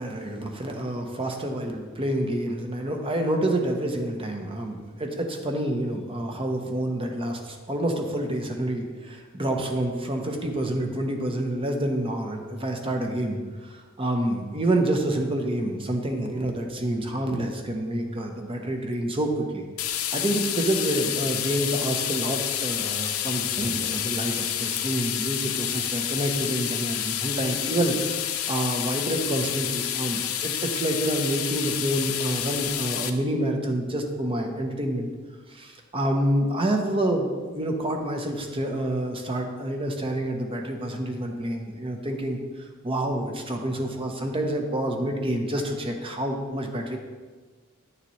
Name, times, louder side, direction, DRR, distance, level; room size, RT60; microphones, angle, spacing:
voice 1, 0.0-19.6 20.1-27.9 28.5-35.1 35.5-47.0, right 1 dB, 25° right, 3 dB, 0.8 m, -28 dB
sound 1, 19.8-33.1, left 10 dB, 85° left, 0.5 m, -29 dB
8.3 x 6.9 x 3.1 m, 1.4 s
head